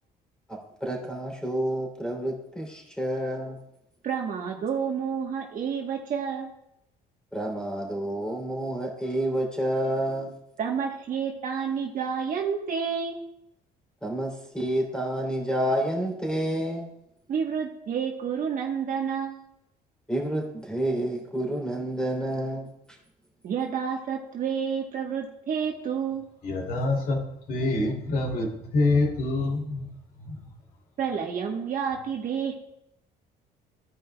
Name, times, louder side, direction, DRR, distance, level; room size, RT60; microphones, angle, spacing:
voice 1, 0.8-3.6 7.3-10.3 14.0-16.9 20.1-22.7, right 1 dB, 5° left, -1 dB, 3.0 m, -29 dB
voice 2, 4.0-6.5 10.6-13.2 17.3-19.4 23.4-26.3 31.0-32.5, right 7 dB, 55° right, 1 dB, 1.2 m, -29 dB
voice 3, 26.4-27.2 27.5-29.9 30.2-30.5, left 2 dB, 60° left, 0 dB, 2.7 m, -26 dB
15.5 x 5.2 x 2.3 m, 0.79 s
cardioid pair, 110°, 17 cm